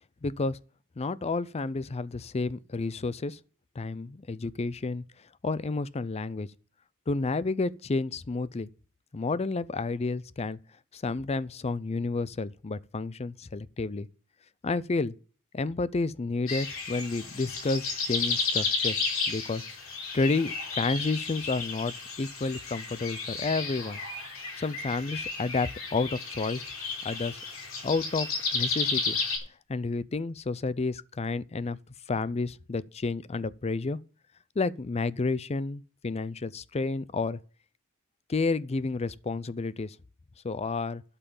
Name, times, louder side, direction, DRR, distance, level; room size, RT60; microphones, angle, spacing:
voice 1, 0.2-0.6 1.0-3.4 3.8-5.0 5.4-6.5 7.1-8.7 9.1-10.6 10.9-14.1 14.6-15.1 15.5-19.6 20.1-24.0 24.6-26.6 27.0-27.4 27.8-29.2 29.7-31.8 32.1-34.0 34.6-37.4 38.3-40.0 40.4-41.0, left 3 dB, 30° left, 0.5 m, -30 dB
sound 1, 16.5-29.4, left 4 dB, 75° left, 3.9 m, -33 dB
12.5 x 5.7 x 7.0 m
head